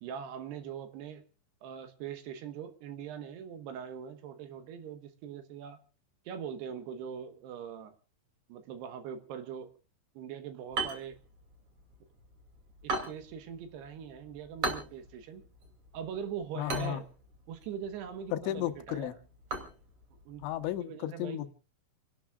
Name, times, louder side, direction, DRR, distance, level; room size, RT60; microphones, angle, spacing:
voice 1, 0.0-1.2 1.6-5.8 6.3-7.9 8.5-9.7 10.1-11.2 12.8-15.4 15.9-17.1 17.5-19.2 20.3-20.5 20.8-21.4, right 8 dB, 70° right, 10 dB, 3.0 m, -42 dB
sound 1, 10.7-20.8, right 3 dB, 35° right, 2.9 m, -41 dB
voice 2, 16.6-17.0 18.3-19.1 20.4-21.5, left 13 dB, 80° left, 11 dB, 3.3 m, -34 dB
29.5 x 12.0 x 2.4 m, 0.35 s
omnidirectional pair, 5.5 m